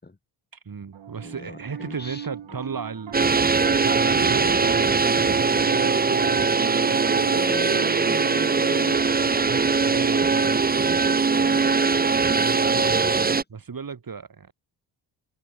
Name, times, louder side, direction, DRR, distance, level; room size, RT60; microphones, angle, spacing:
voice 1, 0.6-3.2 3.5-4.8 5.3-7.3 9.4-10.6 12.4-14.5, right 5 dB, 45° right, 7.3 m, -35 dB
Piano, 0.9-12.4, right 9 dB, 70° right, 4.7 m, -38 dB
voice 2, 1.2-2.6 7.3-9.3 11.3-12.2 12.7-13.4, left 2 dB, 20° left, 4.5 m, -39 dB
sound 1, 3.1-13.4, right 4 dB, 20° right, 0.8 m, -21 dB
cardioid pair, 65°, 46 cm